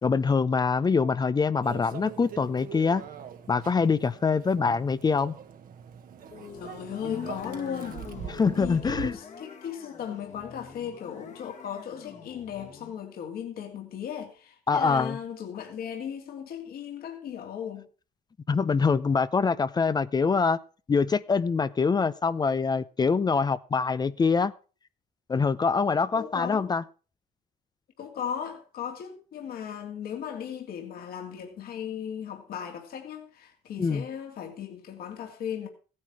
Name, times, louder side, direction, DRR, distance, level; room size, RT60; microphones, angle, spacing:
voice 1, 0.0-3.0 3.5-5.3 8.3-9.2 14.7-15.2 18.5-20.6 20.9-24.5 25.3-26.8 33.8-34.1, left 5 dB, 25° left, 0.6 m, -24 dB
Microwave oven, 1.6-9.1, right 8 dB, 55° right, 1.4 m, -42 dB
sound 1, 6.2-13.0, left 6 dB, 45° left, 1.9 m, -44 dB
voice 2, 6.5-8.0 8.5-17.9 26.2-26.7 28.0-35.7, left 8 dB, 60° left, 2.7 m, -37 dB
15.5 x 9.7 x 4.7 m
cardioid pair, 110°, 17 cm